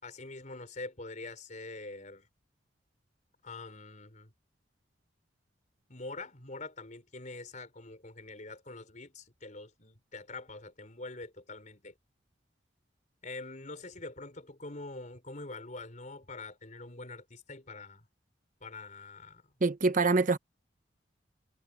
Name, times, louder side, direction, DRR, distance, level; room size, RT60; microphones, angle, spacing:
voice 1, 0.0-2.3 3.4-4.3 5.9-11.9 13.2-18.0 18.6-19.4, left 2 dB, 45° left, 4.8 m, -44 dB
voice 2, 19.6-20.4, right 3 dB, 45° right, 0.9 m, -25 dB
head